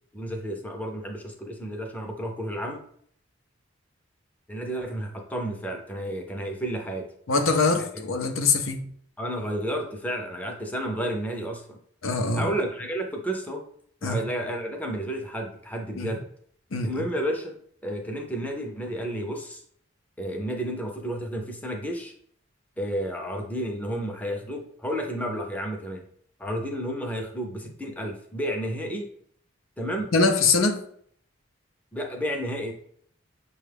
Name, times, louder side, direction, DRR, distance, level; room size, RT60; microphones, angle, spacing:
voice 1, 0.1-2.8 4.5-7.1 9.2-11.8 12.3-13.6 14.0-16.2 16.8-17.6 17.8-19.6 20.2-22.1 22.8-26.0 26.4-29.1 29.8-30.1 31.9-32.7, right 1 dB, 10° left, 0.5 m, -31 dB
voice 2, 7.3-8.8 12.0-12.5 14.0-14.2 16.0-16.2 16.7-16.9 30.1-30.8, left 3 dB, 90° left, 0.6 m, -23 dB
6.1 x 2.3 x 3.4 m
head